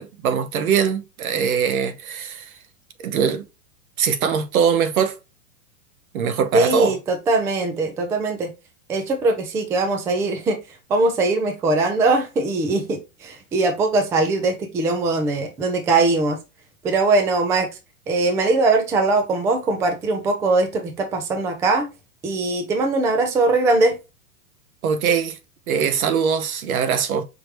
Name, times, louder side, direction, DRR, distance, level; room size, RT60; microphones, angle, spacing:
voice 1, 0.0-2.5 3.0-3.4 4.0-5.2 6.1-7.0 24.8-25.4 25.7-27.2, right 7 dB, 75° right, 1.0 m, -22 dB
voice 2, 6.5-8.5 8.9-10.6 10.9-16.4 16.8-17.7 18.1-21.9 22.2-24.0, right 3 dB, 5° right, 0.3 m, -21 dB
5.1 x 3.2 x 3.0 m
hypercardioid pair, 130°, 43 cm